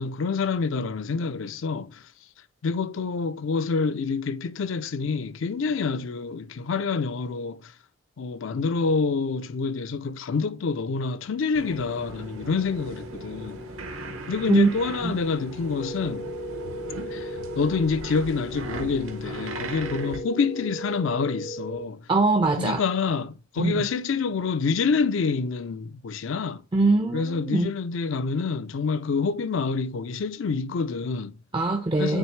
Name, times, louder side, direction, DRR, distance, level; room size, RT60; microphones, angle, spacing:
voice 1, 0.0-2.0 2.6-7.7 8.2-13.6 14.3-16.3 17.1-17.3 17.6-22.0 22.5-26.6 27.1-31.3 32.0-32.2, left 4 dB, 65° left, 0.4 m, -27 dB
sound 1, 11.5-20.2, right 3 dB, 75° right, 0.9 m, -39 dB
sound 2, 11.9-21.0, left 3 dB, 50° right, 0.7 m, -42 dB
sound 3, 15.8-17.8 19.8-21.8, right 1 dB, 85° left, 1.7 m, -36 dB
voice 2, 22.1-22.8 23.6-23.9 26.7-27.7 31.5-32.2, right 3 dB, 20° right, 0.4 m, -22 dB
8.9 x 3.5 x 3.1 m
head